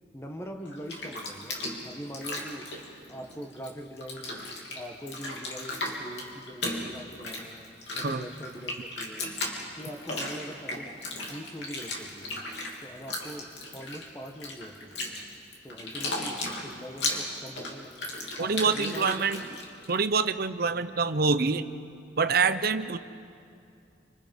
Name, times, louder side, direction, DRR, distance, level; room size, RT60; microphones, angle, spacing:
voice 1, 0.1-2.7 3.1-9.3 9.6-12.4 12.8-15.2 15.6-18.0 18.4-19.6, equal, 15° left, 4 dB, 1.5 m, -42 dB
Bathtub (filling or washing), 0.6-3.7 4.0-19.9, left 2 dB, 70° left, 3.3 m, -36 dB
voice 2, 18.4-19.4 19.9-21.6 22.2-23.0, right 4 dB, 55° right, 11 dB, 0.8 m, -26 dB
28.0 x 26.0 x 5.5 m, 2.5 s
head